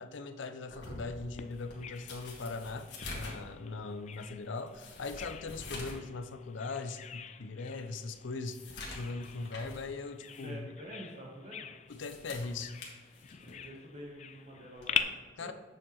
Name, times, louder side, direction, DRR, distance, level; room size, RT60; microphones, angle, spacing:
voice 1, 0.0-10.7 11.9-12.8 15.4-15.5, left 3 dB, 85° left, 9 dB, 0.6 m, -40 dB
sound 1, 0.7-6.1 6.4-6.5 7.1-7.2 7.6-9.9 10.2-10.5 11.7-13.7 14.8-15.0, left 2 dB, 65° left, 1.7 m, -47 dB
Bird vocalization bird call bird song, 1.4-15.0, left 9 dB, 35° left, 0.3 m, -44 dB
voice 2, 10.2-11.7 13.3-15.5, equal, 35° right, -1 dB, 1.1 m, -48 dB
8.7 x 6.5 x 3.0 m, 1.4 s
head